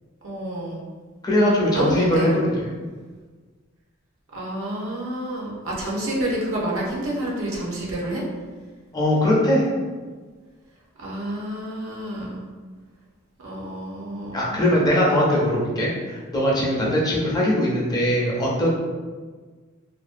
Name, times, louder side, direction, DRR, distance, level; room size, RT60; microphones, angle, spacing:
voice 1, 0.2-0.8 1.7-2.3 4.3-8.2 11.0-12.4 13.4-14.6 16.8-16.9, right 1 dB, 75° right, -4 dB, 0.6 m, -29 dB
voice 2, 1.2-2.5 8.9-9.7 14.3-18.7, left 1 dB, 20° left, -5 dB, 0.5 m, -20 dB
2.5 x 2.1 x 2.5 m, 1.4 s
head